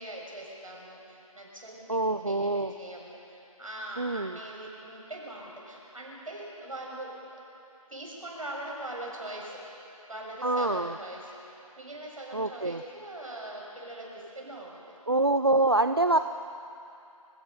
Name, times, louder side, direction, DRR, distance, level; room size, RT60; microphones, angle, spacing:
voice 1, 0.0-2.0 2.3-7.1 7.9-9.6 10.1-14.9, right 1 dB, 65° right, -2 dB, 7.2 m, -41 dB
voice 2, 1.9-2.7 4.0-4.4 10.4-11.0 12.3-12.8 15.1-16.2, right 2 dB, 40° right, 9 dB, 0.5 m, -25 dB
29.5 x 17.5 x 5.6 m, 2.7 s
figure-of-eight pair, 175°, 19 cm